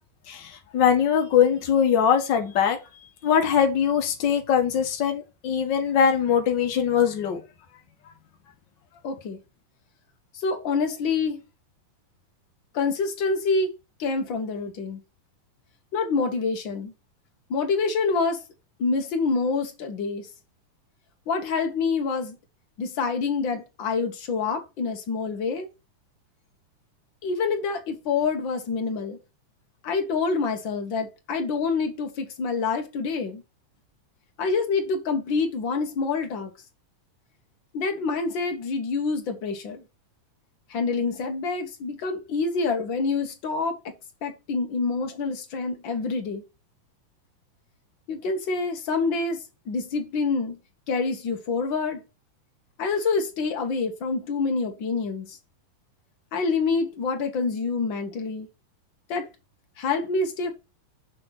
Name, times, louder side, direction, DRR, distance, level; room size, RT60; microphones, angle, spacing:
voice 1, 0.3-2.8 3.2-7.4, left 8 dB, 85° left, 1.0 m, -22 dB
voice 2, 9.0-9.4 10.3-11.4 12.7-13.7 14.0-15.0 15.9-16.9 17.5-18.4 18.8-20.3 21.3-22.4 22.8-25.7 27.2-29.2 29.8-33.4 34.4-36.5 37.7-39.8 40.7-43.9 44.2-46.4 48.1-49.4 49.7-50.6 50.9-52.0 52.8-55.4 56.3-58.5 59.1-59.3 59.8-60.5, left 4 dB, 65° left, 1.2 m, -27 dB
7.5 x 3.5 x 5.7 m
omnidirectional pair, 3.8 m